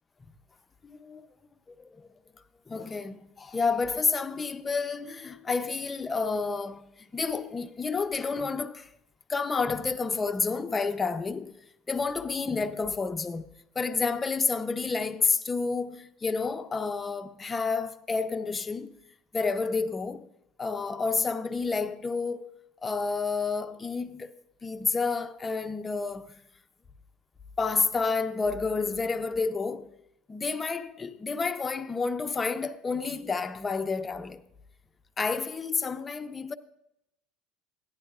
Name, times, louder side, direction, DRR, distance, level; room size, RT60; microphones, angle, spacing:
voice 1, 0.8-1.3 1.8-2.1 2.7-6.8 7.1-8.9 9.3-11.6 11.9-13.4 13.8-18.9 19.3-20.3 20.6-22.5 22.8-24.3 24.6-26.3 27.6-29.9 30.3-34.4 35.2-36.5, left 4 dB, 20° left, 0.6 m, -30 dB
14.5 x 10.5 x 2.4 m
supercardioid pair, 100°, 0 cm